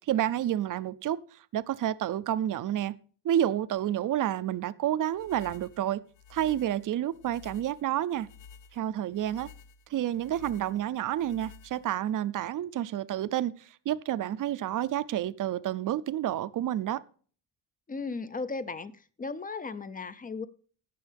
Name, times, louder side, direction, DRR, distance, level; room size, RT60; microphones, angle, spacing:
voice 1, 0.1-1.2 1.5-2.9 3.2-6.0 6.3-8.3 8.7-9.5 9.9-17.0, right 11 dB, 45° right, 0.5 m, -29 dB
sound 1, 5.1-12.1, left 6 dB, 85° left, 0.9 m, -53 dB
voice 2, 17.9-20.5, left 4 dB, 20° left, 0.4 m, -36 dB
16.0 x 6.4 x 3.4 m
cardioid pair, 140°, 43 cm